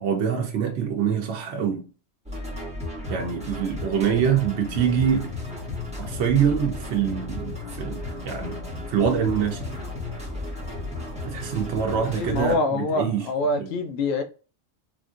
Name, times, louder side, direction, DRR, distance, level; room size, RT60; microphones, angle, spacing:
voice 1, 0.0-1.9 3.1-5.3 6.0-8.0 8.2-8.6 8.9-9.7 11.2-13.2, right 7 dB, 80° right, 0.9 m, -24 dB
sound 1, 2.3-12.6, left 2 dB, 5° right, 1.2 m, -34 dB
voice 2, 11.9-14.2, left 2 dB, 70° left, 0.8 m, -25 dB
3.6 x 2.5 x 2.4 m
omnidirectional pair, 1.1 m